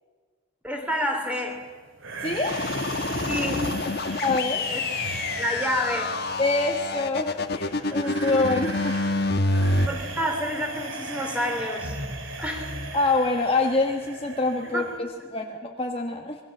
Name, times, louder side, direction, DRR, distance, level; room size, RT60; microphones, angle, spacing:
voice 1, 0.6-1.6 3.2-3.6 4.7-4.8 5.4-6.2 9.7-12.0 12.4-12.8 14.7-14.8, equal, 5° right, 3 dB, 3.3 m, -29 dB
sound 1, 2.0-15.0, right 2 dB, 65° right, 2.6 m, -37 dB
voice 2, 2.2-2.6 4.2-4.6 6.4-8.9 12.9-16.4, left 3 dB, 25° left, 2 dB, 1.3 m, -25 dB
sound 2, 2.5-9.9, left 2 dB, 50° left, 1.3 m, -27 dB
26.0 x 21.5 x 7.3 m, 1.5 s
head